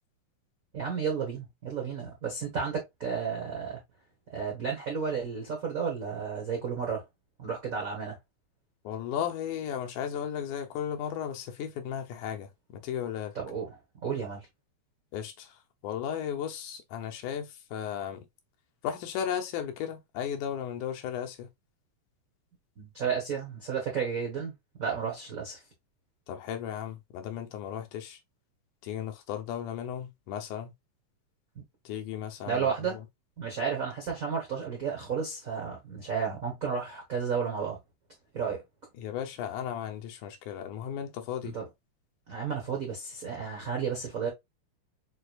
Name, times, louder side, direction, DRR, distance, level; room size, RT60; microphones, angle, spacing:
voice 1, 0.7-3.8 4.3-7.0 7.4-8.2 13.3-14.5 22.8-24.5 24.8-25.6 31.5-31.6 32.5-33.0 33.4-37.8 38.3-38.6 41.4-41.7 42.3-44.3, right 6 dB, 75° right, 0.7 m, -32 dB
voice 2, 8.8-12.5 12.8-13.3 15.1-15.5 15.8-18.3 18.8-21.5 26.3-28.2 28.8-30.7 31.9-33.0 39.0-41.6, left 9 dB, 80° left, 2.2 m, -35 dB
6.2 x 2.7 x 2.3 m
omnidirectional pair, 3.5 m